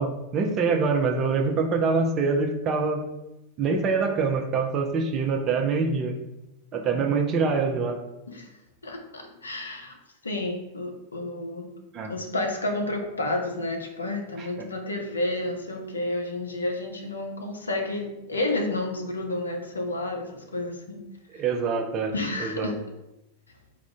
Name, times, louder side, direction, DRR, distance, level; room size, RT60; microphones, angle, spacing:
voice 1, 0.0-3.0 3.6-6.1 6.7-8.0 11.9-12.1 14.4-14.7 21.3-22.1 22.4-22.8, right 4 dB, 30° right, 3 dB, 0.5 m, -25 dB
voice 2, 8.8-10.0 10.2-11.7 12.1-21.0 22.1-22.7, left 2 dB, 75° left, 3 dB, 0.6 m, -30 dB
3.6 x 2.5 x 3.4 m, 0.93 s
figure-of-eight pair, 90°, 0 cm